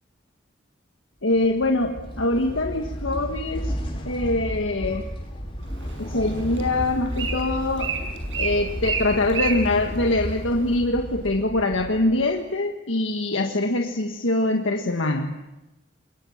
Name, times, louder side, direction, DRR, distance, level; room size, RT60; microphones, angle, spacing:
voice 1, 1.2-3.7 4.0-5.1 6.0-7.9 8.4-15.4, left 2 dB, 85° left, 3 dB, 1.6 m, -24 dB
sound 1, 1.3-12.3, equal, 30° left, 5.3 m, -33 dB
Bird, 5.6-10.8, right 5 dB, 75° right, 6.4 m, -32 dB
27.0 x 22.5 x 7.3 m, 1.0 s
head